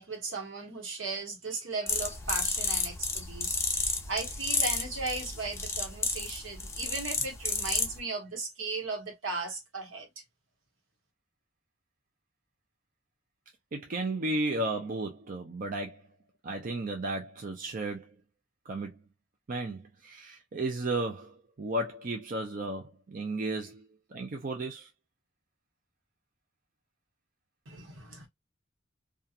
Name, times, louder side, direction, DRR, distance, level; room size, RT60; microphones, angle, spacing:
voice 1, 0.0-3.6 4.1-10.1 27.7-28.3, right 3 dB, 75° right, 1.1 m, -36 dB
sound 1, 1.9-8.0, left 4 dB, 15° left, 0.5 m, -32 dB
voice 2, 13.7-16.0 16.4-18.1 18.7-18.9 19.5-24.9, right 2 dB, 45° right, 0.5 m, -34 dB
2.8 x 2.4 x 2.4 m
head